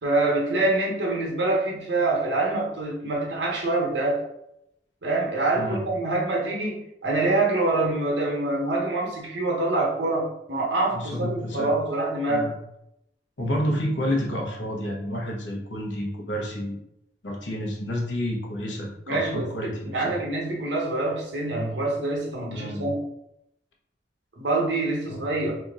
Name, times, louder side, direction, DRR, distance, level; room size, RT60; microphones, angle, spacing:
voice 1, 0.0-4.2 5.0-12.5 19.1-23.0 24.4-25.6, right 2 dB, 75° right, -2 dB, 1.0 m, -25 dB
voice 2, 10.9-11.7 12.3-12.5 13.4-16.8 17.2-20.2 22.5-22.8 25.1-25.3, equal, 85° left, -1 dB, 0.9 m, -29 dB
2.9 x 2.6 x 3.6 m, 0.82 s
head